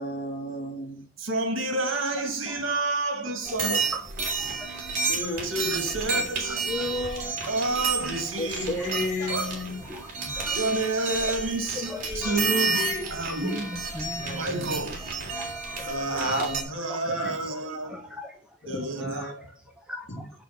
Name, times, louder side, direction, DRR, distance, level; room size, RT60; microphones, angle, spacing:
voice 1, 0.0-1.0 5.1-5.5 6.6-7.3 8.4-9.8 11.8-12.4 14.0-14.8 16.1-16.6 17.1-17.4 18.6-19.4 20.1-20.2, left 1 dB, 60° left, 2.9 m, -32 dB
voice 2, 1.2-3.9 5.4-6.7 7.5-8.8 9.3-9.7 10.2-13.7 14.3-15.0 15.8-18.1 18.7-19.3, right 2 dB, 75° right, 2.1 m, -30 dB
voice 3, 3.2-3.6 3.9-4.9 5.2-5.4 5.7-5.8 6.5-7.0 8.8-8.9 9.9-10.6 11.3-11.4 11.7-12.4 13.4-14.5 15.0-15.1 15.4-15.9 16.9-18.4 19.2-19.3 19.9-20.3, equal, 5° right, 0.9 m, -40 dB
sound 1, 3.4-16.6, right 4 dB, 45° right, 3.3 m, -31 dB
6.9 x 6.9 x 5.9 m
head